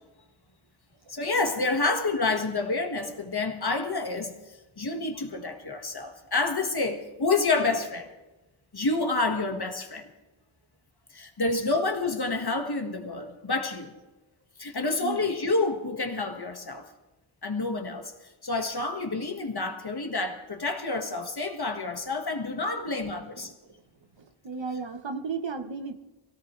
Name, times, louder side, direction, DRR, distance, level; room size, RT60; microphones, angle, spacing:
voice 1, 1.1-4.3 4.8-8.1 8.7-10.1 11.1-13.9 14.6-16.9 17.4-18.1 18.4-23.5, left 3 dB, 50° left, 4 dB, 1.8 m, -28 dB
voice 2, 15.0-15.3 22.9-23.7 24.2-25.9, right 5 dB, 65° right, 7 dB, 1.2 m, -35 dB
23.0 x 17.0 x 3.3 m, 1.1 s
wide cardioid pair, 65°, 49 cm